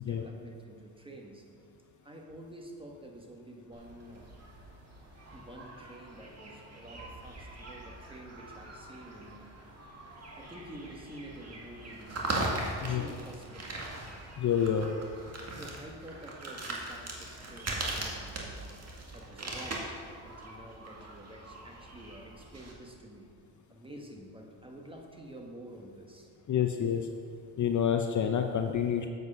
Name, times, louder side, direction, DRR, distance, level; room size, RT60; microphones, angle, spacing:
voice 1, 0.0-1.7 2.0-4.3 5.3-9.5 10.4-13.7 15.5-19.9 20.2-23.3 23.7-26.3, right 1 dB, 10° right, 2 dB, 1.4 m, -49 dB
sound 1, 3.7-22.7, right 2 dB, 35° right, 2.0 m, -40 dB
voice 2, 14.4-14.9 26.5-27.1 27.6-29.1, left 8 dB, 40° left, 5 dB, 0.7 m, -28 dB
8.0 x 7.9 x 5.4 m, 2.3 s
cardioid pair, 80°, 45 cm